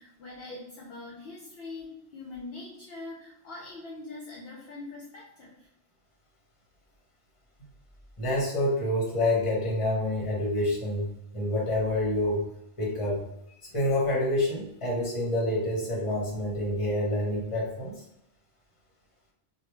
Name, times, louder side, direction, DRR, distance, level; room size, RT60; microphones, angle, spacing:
voice 1, 0.0-5.7, left 3 dB, 65° left, -3 dB, 0.8 m, -43 dB
voice 2, 8.2-12.4 12.8-13.2 13.7-17.9, left 1 dB, 30° left, -4 dB, 1.0 m, -27 dB
2.9 x 2.3 x 3.2 m, 0.80 s
omnidirectional pair, 1.2 m